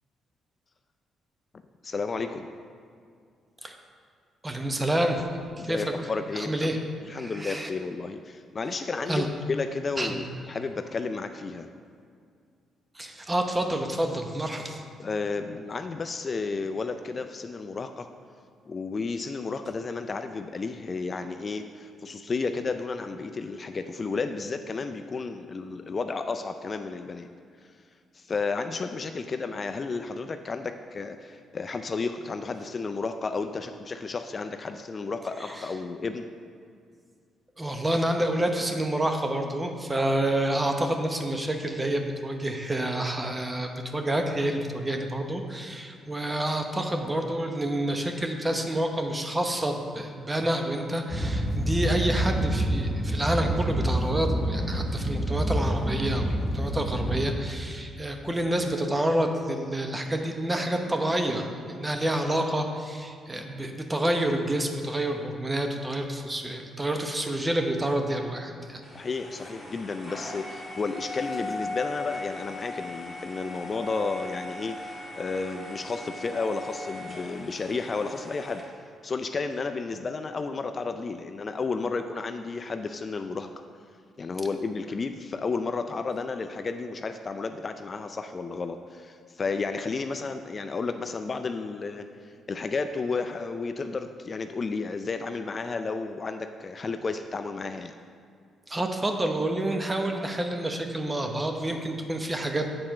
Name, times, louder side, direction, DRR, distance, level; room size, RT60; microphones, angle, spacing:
voice 1, 1.8-2.5 5.6-6.7 7.0-11.7 15.0-18.1 18.7-27.3 27.6-27.7 28.1-36.3 68.9-78.6 79.0-83.6 84.2-97.9, left 4 dB, 35° left, 8 dB, 0.4 m, -32 dB
voice 2, 4.4-5.3 5.6-5.9 6.3-6.8 7.1-7.7 9.1-9.3 10.0-10.2 12.9-14.8 35.4-35.7 37.6-68.8 98.7-102.7, right 1 dB, 15° right, 4 dB, 0.8 m, -28 dB
sound 1, 51.1-57.2, equal, 15° left, 1.0 m, -27 dB
sound 2, 68.8-78.6, left 2 dB, ahead, 2.0 m, -38 dB
7.9 x 4.3 x 6.3 m, 2.2 s
cardioid pair, 90°, 0 cm